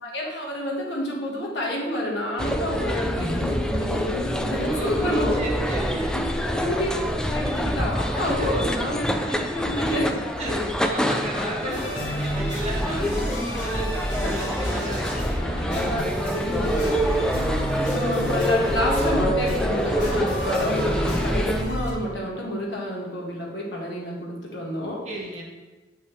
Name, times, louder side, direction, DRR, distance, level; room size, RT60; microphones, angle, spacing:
voice 1, 0.0-5.4 5.9-6.9 7.3-9.1 9.5-10.6 11.6-11.8 15.6-17.5 17.9-25.0, left 1 dB, 70° left, -2 dB, 1.7 m, -29 dB
sound 1, 2.4-21.6, equal, 5° left, 0.4 m, -26 dB
voice 2, 4.7-6.2 8.1-8.6 9.2-15.4 16.4-16.8 17.3-17.5 25.0-25.4, right 1 dB, 40° right, -2 dB, 1.6 m, -35 dB
sound 2, 11.7-21.9, equal, 45° left, 2.3 m, -30 dB
8.2 x 5.4 x 3.4 m, 1.2 s
head